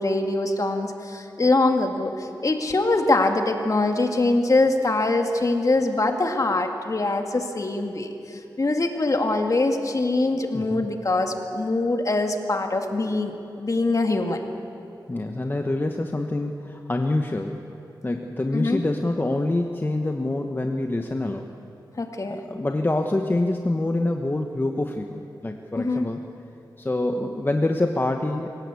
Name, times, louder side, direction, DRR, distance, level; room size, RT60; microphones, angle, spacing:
voice 1, 0.0-13.3 13.6-14.4 18.5-18.8 22.0-22.4 25.8-26.1, left 2 dB, 45° left, 4 dB, 2.1 m, -23 dB
voice 2, 10.5-10.9 15.1-17.6 18.0-21.5 22.3-26.2 26.8-28.5, left 2 dB, 25° left, 4 dB, 1.1 m, -26 dB
25.5 x 17.0 x 8.4 m, 2.8 s
wide cardioid pair, 80°, 8 cm